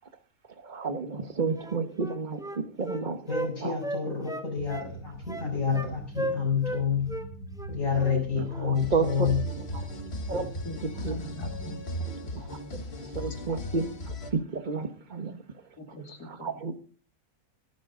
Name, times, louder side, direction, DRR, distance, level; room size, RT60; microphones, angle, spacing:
voice 1, 0.5-3.3 3.6-3.8 8.3-9.3 9.7-9.8 10.3-10.5 10.8-11.2 12.3-16.0 16.2-16.7, right 4 dB, 30° right, 9 dB, 1.4 m, -32 dB
Wind instrument woodwind instrument, 1.6-3.5 3.8-4.9 5.3-5.9 6.2-6.8 7.1-7.3 7.6-8.2 8.5-8.7, equal, 5° right, 1.1 m, -35 dB
voice 2, 3.3-7.1 7.7-9.4, left 6 dB, 65° left, -5 dB, 5.4 m, -28 dB
sound 1, 4.6-11.8, right 2 dB, 70° right, 5.2 m, -43 dB
sound 2, 8.7-14.3, left 1 dB, 45° left, 1.7 m, -37 dB
voice 3, 10.3-12.1 12.3-12.4 15.9-16.5, right 1 dB, 80° left, 4 dB, 3.0 m, -43 dB
22.5 x 10.0 x 3.9 m, 0.39 s
omnidirectional pair, 1.6 m